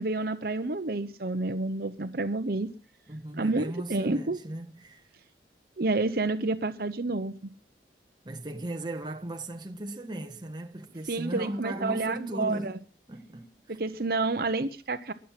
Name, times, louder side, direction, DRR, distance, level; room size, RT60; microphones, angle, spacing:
voice 1, 0.0-2.7 3.4-4.4 5.8-7.5 11.1-12.7 13.8-15.1, right 3 dB, 55° right, 0.9 m, -29 dB
voice 2, 3.1-5.0 8.2-13.5, right 1 dB, 25° right, 1.3 m, -37 dB
21.5 x 7.6 x 5.9 m
head